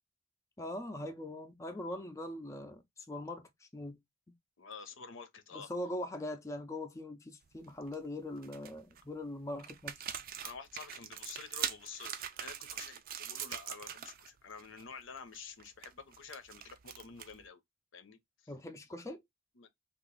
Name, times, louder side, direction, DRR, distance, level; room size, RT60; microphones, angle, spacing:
voice 1, 0.6-4.0 5.5-9.9 18.5-19.2, left 1 dB, 15° left, 0.4 m, -41 dB
voice 2, 4.6-5.7 10.4-17.6 17.9-18.2 18.9-19.0 19.6-19.7, left 5 dB, 75° left, 0.7 m, -49 dB
sound 1, 7.5-7.9 8.4-9.0 9.6-14.3 14.5-14.8 15.2-17.5, right 9 dB, 45° right, 0.4 m, -42 dB
2.9 x 2.4 x 3.7 m
head